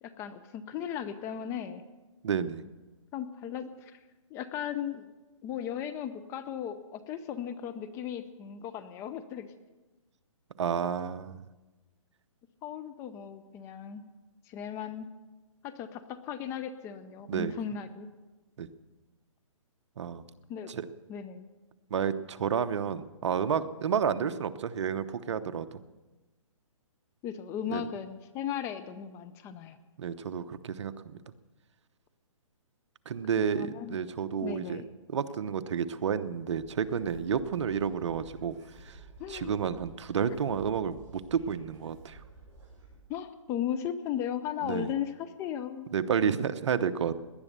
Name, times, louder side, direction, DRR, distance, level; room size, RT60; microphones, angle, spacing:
voice 1, 0.0-1.8 3.1-4.0 4.3-5.1 5.4-9.5 12.6-14.0 14.5-15.1 15.6-18.1 20.5-20.7 21.1-21.5 27.2-29.8 33.4-34.0 34.4-34.9 39.2-39.5 43.1-45.9, left 9 dB, 15° left, 10 dB, 0.6 m, -36 dB
voice 2, 2.2-2.6 10.6-11.5 17.3-17.5 18.6-18.7 20.0-20.2 20.7-20.9 21.9-25.7 27.7-27.8 30.0-31.2 33.1-34.8 35.1-38.5 38.8-39.0 39.3-42.2 44.6-44.9 45.9-47.2, right 7 dB, 55° right, 11 dB, 0.9 m, -30 dB
sound 1, 36.5-43.0, right 3 dB, 15° right, 7.1 m, -53 dB
18.5 x 11.0 x 6.8 m, 1.2 s
hypercardioid pair, 150°, 17 cm